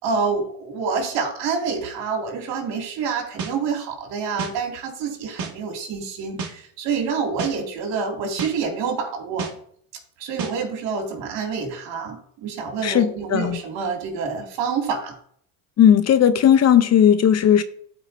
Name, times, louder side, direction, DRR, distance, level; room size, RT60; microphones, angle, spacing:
voice 1, 0.0-9.5 10.2-15.1, right 5 dB, 70° right, 2.3 m, -27 dB
sound 1, 3.4-3.5 4.4-4.5 5.4-5.5 6.4-6.5 7.4-7.5 8.4-8.5 9.4-9.5 10.4-10.5, right 5 dB, 50° right, 1.7 m, -30 dB
voice 2, 12.8-13.6 15.8-17.6, left 9 dB, 35° left, 0.5 m, -16 dB
12.5 x 4.7 x 2.6 m
supercardioid pair, 80°, 45 cm